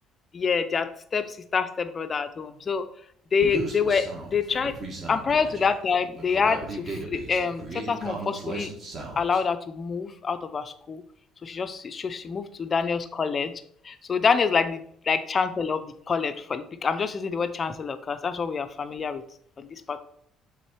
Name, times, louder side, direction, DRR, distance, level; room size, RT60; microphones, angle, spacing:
voice 1, 0.3-2.9 3.3-4.8 5.1-8.7 9.2-11.0 11.4-13.5 13.8-14.8 15.1-19.2 19.6-20.0, left 5 dB, 25° left, 10 dB, 0.4 m, -27 dB
Human voice, 3.4-9.4, right 3 dB, 35° right, 1.4 m, -36 dB
6.1 x 3.7 x 4.6 m, 0.66 s
cardioid pair, 150°, 0 cm